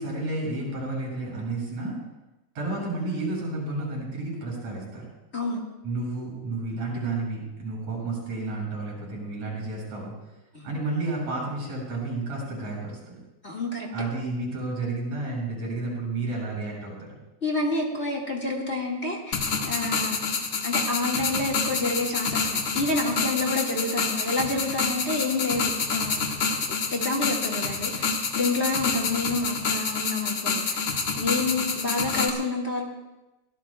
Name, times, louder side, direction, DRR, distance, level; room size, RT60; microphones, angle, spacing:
voice 1, 0.0-2.0 2.6-5.1 5.8-10.1 10.6-13.2 13.9-17.1, right 2 dB, 60° right, -3 dB, 8.5 m, -31 dB
voice 2, 13.4-13.9 17.4-20.2 20.6-26.2 26.9-30.8 31.2-32.9, left 2 dB, 25° left, -1 dB, 1.8 m, -28 dB
sound 1, 19.3-32.3, left 5 dB, 50° left, 2.0 m, -28 dB
24.5 x 17.5 x 2.3 m, 1.0 s
omnidirectional pair, 3.4 m